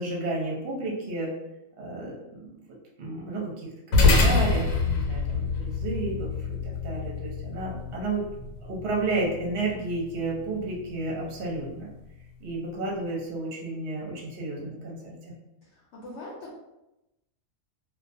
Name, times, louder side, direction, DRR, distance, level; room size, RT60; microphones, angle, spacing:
voice 1, 0.0-1.3 1.8-2.6 3.0-8.2 8.7-11.9 12.4-15.2, right 2 dB, 55° right, -3 dB, 0.8 m, -32 dB
sound 1, 3.9-12.6, left 3 dB, 90° left, 1.0 m, -27 dB
voice 2, 15.6-16.6, left 1 dB, 65° left, -5 dB, 0.8 m, -42 dB
2.3 x 2.2 x 2.5 m, 0.92 s
omnidirectional pair, 1.4 m